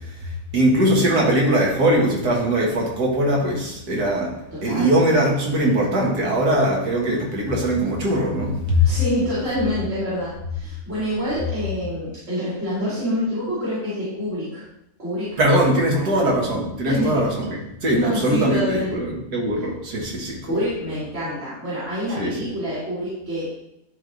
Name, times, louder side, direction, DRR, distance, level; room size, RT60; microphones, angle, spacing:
voice 1, 0.2-4.3 4.6-8.8 15.4-20.6 22.2-22.4, right 1 dB, 85° right, -2 dB, 2.1 m, -21 dB
voice 2, 4.5-4.9 8.8-14.6 15.0-15.5 15.9-16.2 16.9-17.1 17.9-19.0 19.6-19.7 20.5-23.5, equal, 40° right, -10 dB, 2.5 m, -26 dB
10.5 x 3.6 x 3.9 m, 0.82 s
omnidirectional pair, 1.7 m